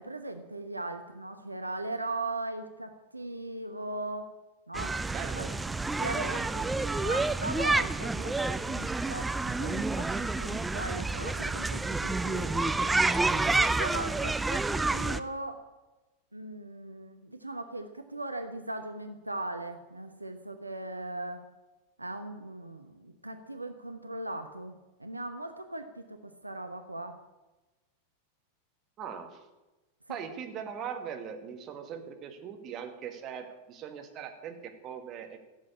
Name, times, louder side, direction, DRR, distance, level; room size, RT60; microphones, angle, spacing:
voice 1, 0.0-4.3 4.7-5.5 6.0-6.7 7.0-8.4 8.7-12.8 13.3-15.6 16.3-21.4 22.0-27.2 30.1-30.2, right 2 dB, 85° right, 7 dB, 1.0 m, -39 dB
sound 1, 4.7-15.2, right 3 dB, 10° right, 0.5 m, -29 dB
voice 2, 5.1-5.5 29.0-29.4 30.1-35.4, right 7 dB, 35° right, 5 dB, 2.0 m, -40 dB
15.0 x 7.6 x 8.8 m, 1.1 s
figure-of-eight pair, 90°, 0 cm